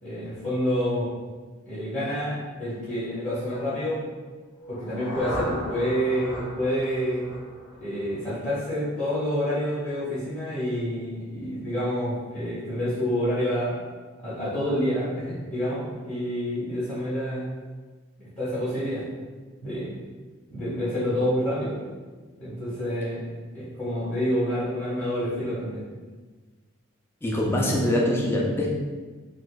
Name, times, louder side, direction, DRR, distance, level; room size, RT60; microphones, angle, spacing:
voice 1, 0.0-1.1 1.6-4.1 4.7-7.3 7.8-13.8 14.2-17.5 18.2-19.0 19.6-19.9 20.5-21.8 22.4-23.3 23.5-25.8, equal, 35° left, -11 dB, 1.1 m, -28 dB
Rise effect, 4.5-8.5, left 1 dB, 65° left, 1.1 m, -36 dB
voice 2, 27.2-28.8, left 1 dB, 10° left, -2 dB, 0.4 m, -23 dB
4.1 x 2.6 x 2.3 m, 1.4 s
head